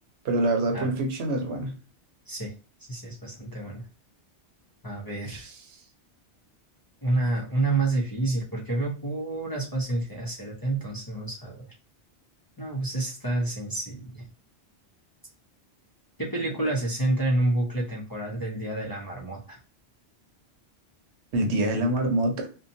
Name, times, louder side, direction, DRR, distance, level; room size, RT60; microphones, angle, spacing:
voice 1, 0.2-1.7 5.2-5.5 16.6-16.7 21.3-22.5, right 1 dB, 85° right, 3 dB, 1.0 m, -26 dB
voice 2, 2.9-3.8 4.8-5.5 7.0-11.7 12.6-14.3 16.2-19.6, right 2 dB, 25° left, -4 dB, 0.5 m, -29 dB
2.8 x 2.2 x 2.5 m, 0.35 s
omnidirectional pair, 1.1 m